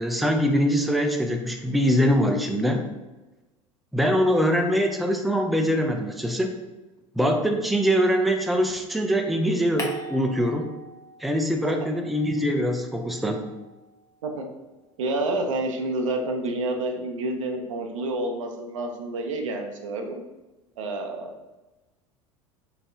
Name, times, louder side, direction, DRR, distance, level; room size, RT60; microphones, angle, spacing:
voice 1, 0.0-2.8 3.9-6.5 7.2-10.7 11.2-13.4, equal, ahead, 4 dB, 0.4 m, -23 dB
sound 1, 9.8-11.5 11.8-14.2, left 1 dB, 20° left, 0.9 m, -42 dB
voice 2, 15.0-20.2 20.8-21.3, right 2 dB, 80° right, 4 dB, 0.6 m, -29 dB
3.9 x 3.5 x 2.6 m, 1.1 s
hypercardioid pair, 80°, 16 cm